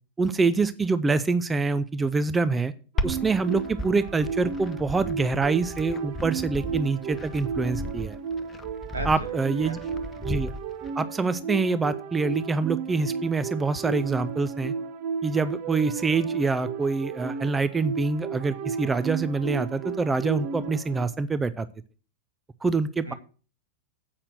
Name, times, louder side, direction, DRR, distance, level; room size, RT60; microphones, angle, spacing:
voice 1, 0.2-2.7 3.0-8.2 9.0-9.8 10.2-10.5 11.0-14.7 15.2-21.7 22.6-23.1, right 4 dB, 15° right, 13 dB, 0.5 m, -25 dB
Glass, 3.0-10.9, left 1 dB, 20° left, 0.8 m, -35 dB
sound 1, 3.0-21.1, right 6 dB, 45° right, 0.9 m, -34 dB
voice 2, 8.9-10.3 23.1-23.2, right 2 dB, 75° right, 6 dB, 1.5 m, -38 dB
8.0 x 5.7 x 7.6 m, 0.38 s
figure-of-eight pair, 90°, 0 cm